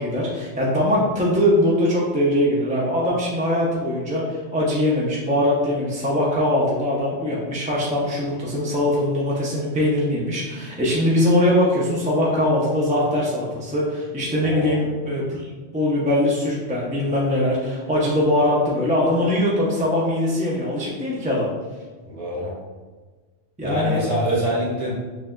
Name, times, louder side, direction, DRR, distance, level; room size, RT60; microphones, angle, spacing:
voice 1, 0.0-21.5 23.6-24.0, left 1 dB, 10° right, -6 dB, 0.4 m, -21 dB
voice 2, 14.4-14.8 22.1-22.5 23.6-25.0, equal, 30° right, -6 dB, 1.2 m, -25 dB
6.5 x 2.4 x 2.2 m, 1.3 s
omnidirectional pair, 1.2 m